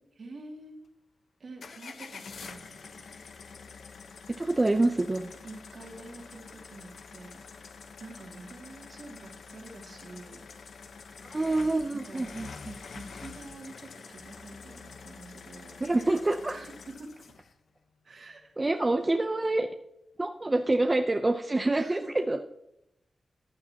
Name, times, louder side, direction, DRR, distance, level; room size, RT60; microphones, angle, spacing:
voice 1, 0.2-0.8 1.4-3.2 5.4-7.4 8.0-10.4 11.9-12.3 12.9-15.8 16.5-17.4 18.0-18.5 21.7-22.3, right 2 dB, 60° right, 1 dB, 2.5 m, -47 dB
sound 1, 1.6-17.5, left 5 dB, 85° left, 1.0 m, -47 dB
voice 2, 4.3-5.3 11.3-12.8 15.8-16.6 18.6-19.7 20.2-22.0 22.3-22.4, right 2 dB, 25° right, 5 dB, 0.6 m, -26 dB
14.5 x 10.5 x 2.9 m, 0.83 s
wide cardioid pair, 105°, 0 cm